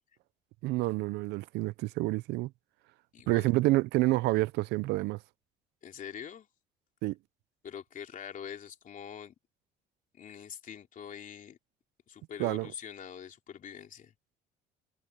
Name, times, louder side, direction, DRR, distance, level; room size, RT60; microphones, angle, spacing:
voice 1, 0.6-2.5 3.3-5.2 7.0-7.2 12.4-12.7, right 19 dB, 85° right, 0.6 m, -28 dB
voice 2, 3.1-3.5 5.8-6.5 7.6-9.3 10.1-11.6 12.1-14.1, left 8 dB, 50° left, 3.2 m, -44 dB
cardioid pair, 90°, 17 cm